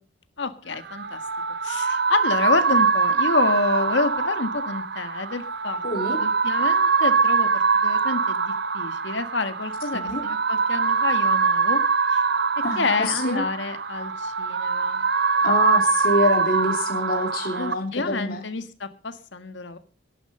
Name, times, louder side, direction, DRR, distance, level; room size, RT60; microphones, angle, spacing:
voice 1, 0.4-1.2 1.6-5.8 6.2-11.8 12.1-12.2 12.8-15.0 17.6-19.8, left 3 dB, 65° left, 9 dB, 1.6 m, -28 dB
sound 1, 0.7-17.7, right 5 dB, 55° right, 0.7 m, -23 dB
voice 2, 5.8-6.2 9.9-10.2 12.6-13.4 15.4-18.4, left 2 dB, 50° left, 1 dB, 3.3 m, -26 dB
17.5 x 11.0 x 5.5 m, 0.40 s
head